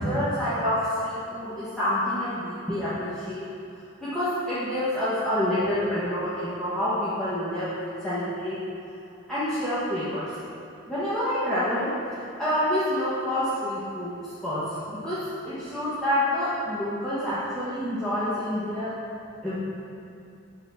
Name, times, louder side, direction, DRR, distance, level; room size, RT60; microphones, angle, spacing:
voice 1, 0.0-3.4 4.0-7.7 8.0-8.6 9.3-10.2 10.9-11.9 12.4-15.2 15.4-18.9 19.4-19.5, left 1 dB, ahead, -14 dB, 1.3 m, -27 dB
9.5 x 3.9 x 6.0 m, 2.6 s
head